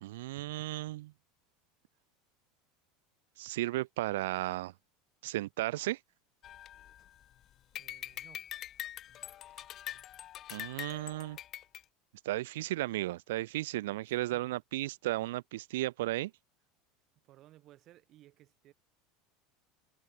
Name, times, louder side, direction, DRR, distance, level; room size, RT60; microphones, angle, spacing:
voice 1, 0.0-1.1 3.4-4.7 5.2-6.0 10.5-11.4 12.3-16.3, right 17 dB, 85° right, 0.3 m, -34 dB
sound 1, 6.4-7.3 7.8-11.8, left 12 dB, 40° left, 1.3 m, -44 dB
voice 2, 7.7-8.5 14.3-14.6 17.1-18.7, right 14 dB, 45° right, 6.3 m, -59 dB
supercardioid pair, 135°, 0 cm